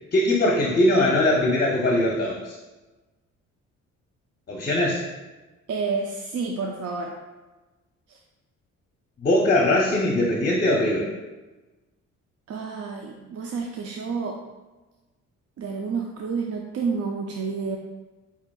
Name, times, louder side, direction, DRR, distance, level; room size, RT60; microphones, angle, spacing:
voice 1, 0.1-2.6 4.5-5.1 9.2-11.1, left 1 dB, 30° left, -1 dB, 0.7 m, -21 dB
voice 2, 5.7-7.1 8.1-8.2 12.5-14.4 15.6-17.8, right 4 dB, 55° right, 1 dB, 0.5 m, -29 dB
6.8 x 2.9 x 2.3 m, 1.2 s
cardioid pair, 90°, 30 cm